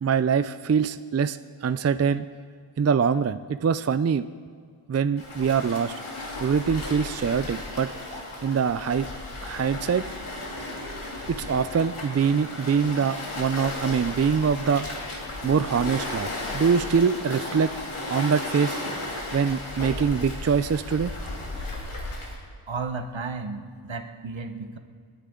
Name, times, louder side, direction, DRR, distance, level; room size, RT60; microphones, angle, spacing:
voice 1, 0.0-2.3 2.8-4.2 4.9-5.9 6.4-7.9 8.4-9.1 9.4-10.1 11.3-14.9 15.4-17.7 18.1-18.8 19.3-21.1, right 6 dB, 35° right, 12 dB, 0.4 m, -24 dB
Waves surf, 5.2-22.4, left 2 dB, 80° left, 2.8 m, -35 dB
voice 2, 22.7-24.8, right 4 dB, 70° right, 7 dB, 1.2 m, -33 dB
30.0 x 10.0 x 3.8 m, 2.1 s
wide cardioid pair, 85°, 49 cm